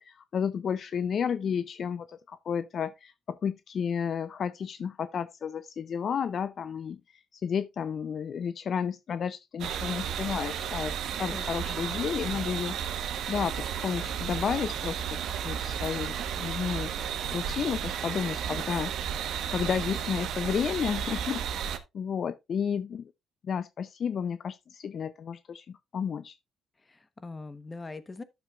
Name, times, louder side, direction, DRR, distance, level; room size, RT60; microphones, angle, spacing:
voice 1, 0.0-7.0 7.3-15.2 15.4-18.9 19.5-21.4 21.9-23.1 23.4-26.4, left 7 dB, 55° left, 0.4 m, -32 dB
sound 1, 9.6-21.8, right 8 dB, 75° right, 1.2 m, -33 dB
voice 2, 11.3-11.8 26.8-28.2, left 3 dB, 25° left, 1.0 m, -42 dB
11.0 x 7.0 x 2.4 m
cardioid pair, 90°, 0 cm